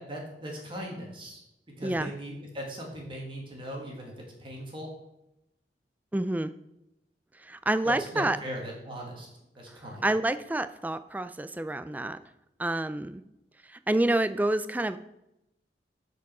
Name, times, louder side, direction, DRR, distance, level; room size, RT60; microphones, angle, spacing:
voice 1, 0.0-1.4 1.8-4.9 7.8-9.3 9.5-10.1, equal, 30° right, -1 dB, 1.7 m, -39 dB
voice 2, 6.1-6.5 7.4-8.4 9.7-9.8 10.0-12.2 12.6-13.2 13.7-15.0, right 1 dB, 10° right, 13 dB, 0.3 m, -28 dB
8.4 x 4.8 x 6.0 m, 0.87 s
head